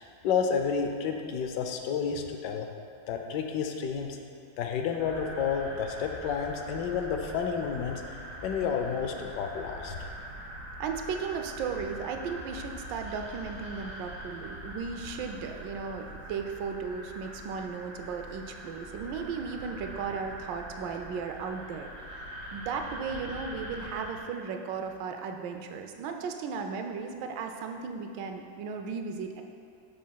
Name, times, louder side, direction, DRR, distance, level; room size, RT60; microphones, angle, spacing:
voice 1, 0.2-2.7 3.1-4.2 4.6-8.0 8.4-10.1, left 6 dB, 75° left, 4 dB, 1.1 m, -30 dB
sound 1, 5.0-24.2, right 1 dB, 60° right, 2.0 m, -43 dB
voice 2, 10.8-29.4, right 5 dB, 90° right, 5 dB, 1.3 m, -36 dB
11.0 x 5.2 x 2.2 m, 2.3 s
omnidirectional pair, 1.9 m